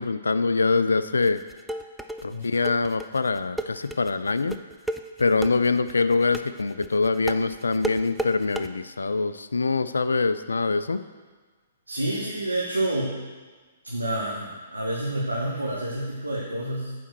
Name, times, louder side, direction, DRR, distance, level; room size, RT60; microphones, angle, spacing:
voice 1, 0.0-1.4 2.2-4.6 5.2-11.0, left 4 dB, 70° left, 12 dB, 0.4 m, -24 dB
sound 1, 1.2-8.7, right 1 dB, ahead, 0.3 m, -33 dB
voice 2, 11.9-13.2 13.8-16.9, right 1 dB, 85° right, -5 dB, 1.4 m, -28 dB
9.3 x 4.2 x 6.2 m, 1.4 s
figure-of-eight pair, 120°, 0 cm